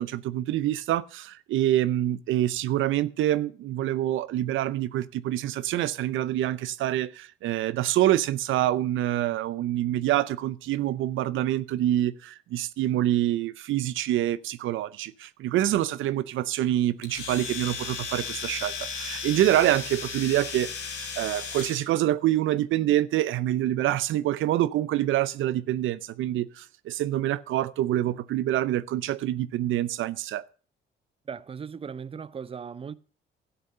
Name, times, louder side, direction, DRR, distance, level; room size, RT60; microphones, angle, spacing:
voice 1, 0.0-30.4, right 13 dB, 80° right, 0.6 m, -26 dB
Domestic sounds home sounds, 17.0-21.9, left 5 dB, 80° left, 2.9 m, -35 dB
voice 2, 31.3-33.0, right 6 dB, 30° right, 0.6 m, -37 dB
12.5 x 8.0 x 6.7 m
cardioid pair, 90°, 20 cm